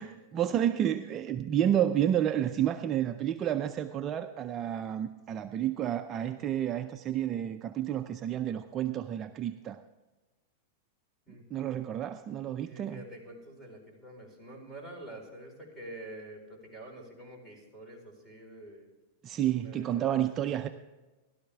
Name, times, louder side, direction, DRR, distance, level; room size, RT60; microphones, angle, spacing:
voice 1, 0.0-9.8 11.5-13.0 19.2-20.7, right 10 dB, 30° right, 7 dB, 0.5 m, -30 dB
voice 2, 11.3-11.8 12.6-18.9 19.6-20.2, right 1 dB, 5° left, 0 dB, 4.4 m, -47 dB
15.5 x 12.5 x 3.5 m, 1.2 s
supercardioid pair, 135°, 0 cm